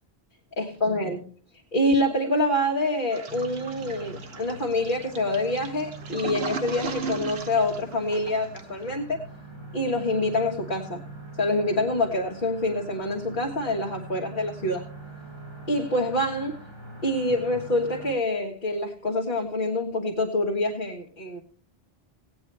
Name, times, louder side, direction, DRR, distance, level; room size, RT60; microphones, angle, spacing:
voice 1, 0.6-1.2 1.7-9.2 9.7-11.0 11.4-14.8 15.7-16.6 17.0-21.4, left 1 dB, 50° left, -1 dB, 1.6 m, -26 dB
Toilet flush, 3.1-8.8, right 4 dB, 75° right, 1.3 m, -37 dB
sound 1, 3.3-18.1, right 2 dB, 25° right, 2.5 m, -43 dB
18.5 x 8.7 x 3.3 m, 0.42 s
omnidirectional pair, 1.0 m